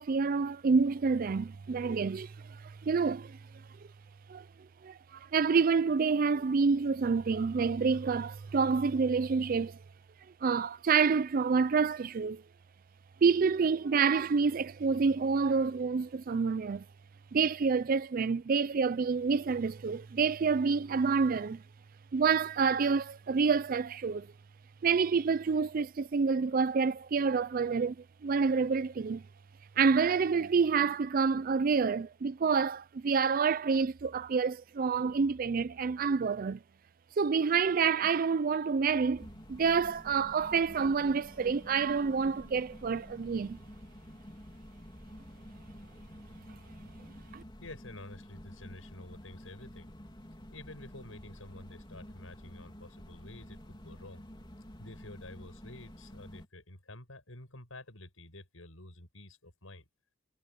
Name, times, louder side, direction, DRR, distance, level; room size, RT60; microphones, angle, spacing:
voice 1, 0.0-3.4 4.3-4.4 4.8-9.8 10.4-12.4 13.2-16.8 17.3-21.6 22.1-24.3 24.8-28.0 28.2-29.2 29.8-36.6 37.2-43.6 47.3-47.4, right 5 dB, 45° right, 0.4 m, -28 dB
sound 1, 39.1-56.4, equal, 25° left, 3.2 m, -50 dB
voice 2, 47.6-49.9 50.5-54.3 54.8-59.8, left 2 dB, 85° left, 6.9 m, -49 dB
head